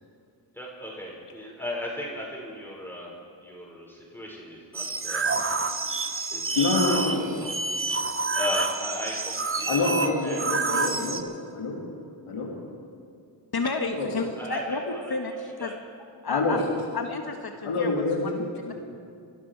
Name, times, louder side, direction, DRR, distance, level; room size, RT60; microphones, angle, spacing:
voice 1, 0.5-3.1 3.4-5.4 6.3-7.5 7.8-7.9 8.3-9.9 10.2-10.8 14.4-15.7, left 1 dB, 5° left, -4 dB, 5.4 m, -37 dB
sound 1, 4.7-11.2, right 3 dB, 25° right, 1.2 m, -28 dB
voice 2, 6.6-7.2 9.7-11.2 11.5-11.8 12.3-12.5 14.0-14.1 16.3-16.6 17.6-18.7, left 3 dB, 80° left, -2 dB, 2.6 m, -26 dB
voice 3, 13.5-14.3 14.5-15.3 15.6-15.7 16.2-16.6 16.9-17.9, left 3 dB, 50° left, 4 dB, 1.6 m, -30 dB
24.5 x 12.5 x 4.7 m, 2.4 s
cardioid pair, 45°, 50 cm